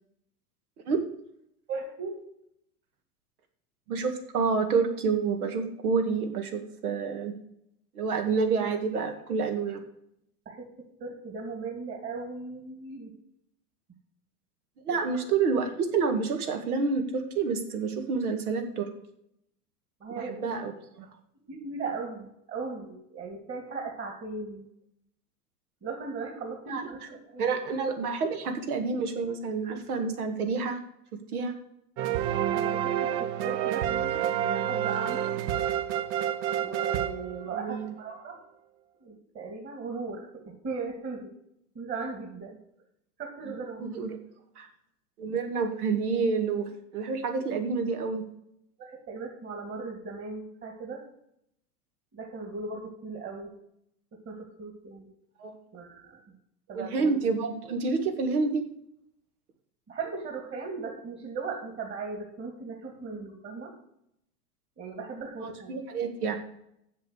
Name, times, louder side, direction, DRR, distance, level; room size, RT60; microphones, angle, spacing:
voice 1, 1.7-2.2 10.5-10.7 11.0-13.1 14.9-15.2 20.0-20.5 21.5-24.7 25.8-27.4 32.5-35.3 36.6-38.4 39.0-41.3 41.7-42.6 43.2-43.9 48.8-51.0 52.1-53.5 54.1-55.1 55.7-56.2 56.7-57.2 59.9-63.7 64.8-65.8, right 4 dB, 30° right, 0 dB, 2.5 m, -38 dB
voice 2, 3.9-7.3 8.0-9.8 14.8-18.9 20.2-20.7 21.0-21.1 26.7-26.9 27.4-30.8 31.3-31.5 37.5-37.8 43.5-43.6 43.8-44.2 44.6-44.7 45.2-48.2 55.4-55.6 56.7-58.6 65.4-66.4, right 4 dB, 80° right, 6 dB, 2.1 m, -28 dB
sound 1, 32.0-37.9, right 10 dB, 50° right, 0.9 m, -29 dB
7.6 x 7.1 x 8.1 m, 0.77 s
hypercardioid pair, 105°, 44 cm